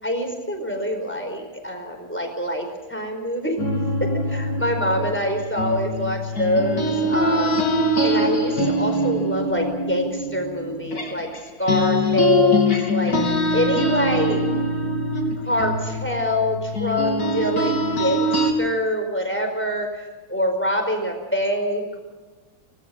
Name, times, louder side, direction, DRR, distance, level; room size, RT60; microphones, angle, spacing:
voice 1, 0.0-3.6 4.0-7.6 8.0-11.3 11.6-13.2 13.5-14.4 15.5-22.0, equal, 5° left, 3 dB, 4.8 m, -25 dB
sound 1, 3.6-11.4 11.7-18.5, left 1 dB, 50° left, 3.6 m, -23 dB
25.5 x 19.5 x 6.0 m, 1.3 s
omnidirectional pair, 2.1 m